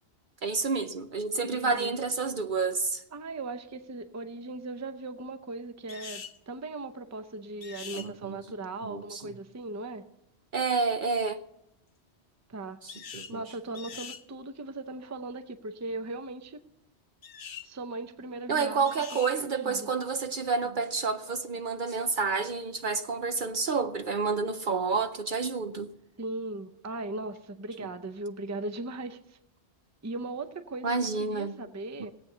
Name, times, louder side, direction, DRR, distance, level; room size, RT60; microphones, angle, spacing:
voice 1, 0.4-3.0 7.9-8.4 8.8-9.2 10.5-11.4 12.8-13.4 18.5-25.9 30.8-31.5, right 4 dB, 55° right, 0.7 m, -29 dB
voice 2, 1.3-1.9 3.1-10.1 12.5-12.8 13.3-16.6 17.6-18.9 19.3-19.9 26.2-29.4 30.0-32.1, right 2 dB, 20° right, 0.5 m, -38 dB
sound 1, 5.9-6.4 7.6-8.1 12.9-13.4 13.8-14.2 17.2-17.7 18.8-19.4, left 7 dB, 60° left, 0.9 m, -43 dB
17.5 x 8.4 x 6.7 m
omnidirectional pair, 1.1 m